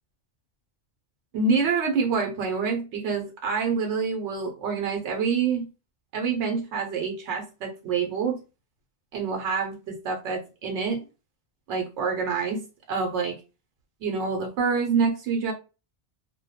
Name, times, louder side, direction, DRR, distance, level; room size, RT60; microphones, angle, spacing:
voice 1, 1.3-5.7 6.1-8.4 9.1-11.0 11.7-12.6 12.9-13.3 14.0-15.5, right 5 dB, 80° right, 2 dB, 0.9 m, -26 dB
2.2 x 2.1 x 2.7 m, 0.30 s
omnidirectional pair, 1.2 m